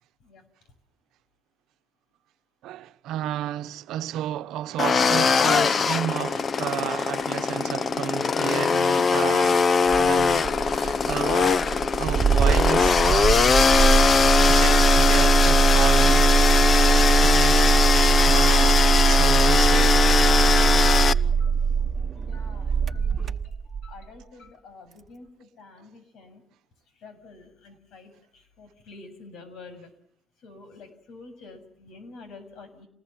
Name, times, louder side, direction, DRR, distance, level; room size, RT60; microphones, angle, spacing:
voice 1, 2.6-14.0 14.5-16.3 17.1-20.0, right 12 dB, 90° right, 1.0 m, -33 dB
sound 1, 4.8-21.1, left 5 dB, 45° left, 1.0 m, -21 dB
Engine starting, 9.9-24.0, right 5 dB, 40° right, 1.0 m, -21 dB
voice 2, 20.8-21.6 22.0-26.4 26.9-29.9 30.4-32.9, left 3 dB, 80° left, 7.7 m, -48 dB
29.5 x 20.0 x 7.6 m
cardioid pair, 90°, 0 cm